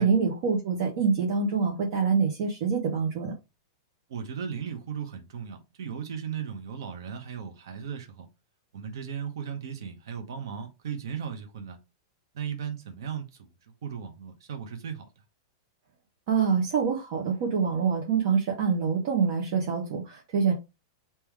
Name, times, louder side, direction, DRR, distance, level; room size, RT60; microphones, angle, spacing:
voice 1, 0.0-3.3 16.3-20.5, right 5 dB, 50° right, 1.1 m, -25 dB
voice 2, 4.1-8.3 8.7-11.8 12.3-13.5 13.8-15.0, right 7 dB, 75° right, 1.0 m, -36 dB
3.7 x 2.9 x 4.6 m
supercardioid pair, 155°, 2 cm